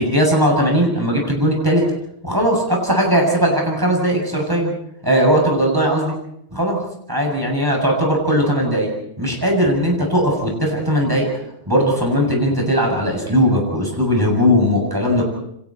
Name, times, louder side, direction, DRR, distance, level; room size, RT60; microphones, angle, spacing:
voice 1, 0.0-1.8 2.2-4.7 5.0-6.1 6.5-6.8 7.1-8.9 9.2-11.3 11.7-15.3, equal, 15° right, 0 dB, 7.6 m, -18 dB
29.5 x 25.0 x 4.5 m, 0.76 s
omnidirectional pair, 1.2 m